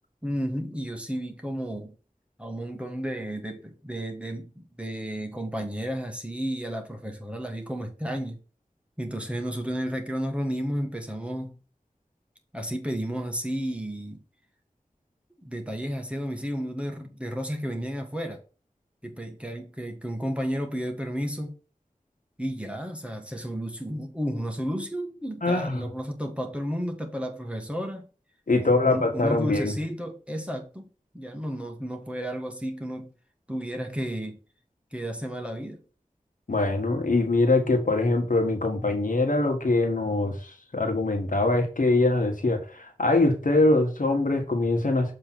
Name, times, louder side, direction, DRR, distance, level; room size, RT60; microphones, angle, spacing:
voice 1, 0.2-1.9 2.4-8.4 9.0-11.6 12.5-14.2 15.4-18.4 19.0-21.5 22.4-28.1 28.6-30.9 31.1-33.1 33.5-34.4 34.9-35.8, equal, 10° right, 1.5 m, -32 dB
voice 2, 25.4-25.8 28.5-29.7 36.5-45.1, left 2 dB, 85° left, 1.5 m, -23 dB
7.2 x 3.3 x 5.9 m
wide cardioid pair, 40°, 13 cm